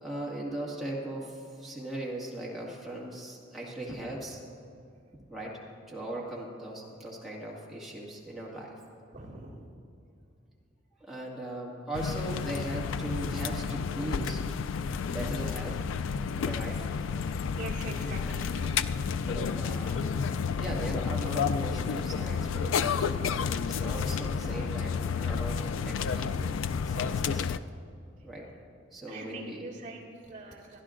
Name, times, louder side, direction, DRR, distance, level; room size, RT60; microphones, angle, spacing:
voice 1, 0.0-4.4 5.3-5.6 5.9-8.8 11.0-14.4 15.1-15.9 16.4-16.9 19.2-20.1 20.6-26.4 26.9-27.7 28.2-28.5 28.9-29.7, right 1 dB, ahead, -5 dB, 1.9 m, -39 dB
voice 2, 9.1-9.6 17.6-18.8 29.1-30.8, right 2 dB, 40° right, -5 dB, 2.1 m, -43 dB
sound 1, 11.9-27.6, left 6 dB, 85° left, 0.3 m, -31 dB
23.5 x 11.0 x 2.5 m, 2.6 s
head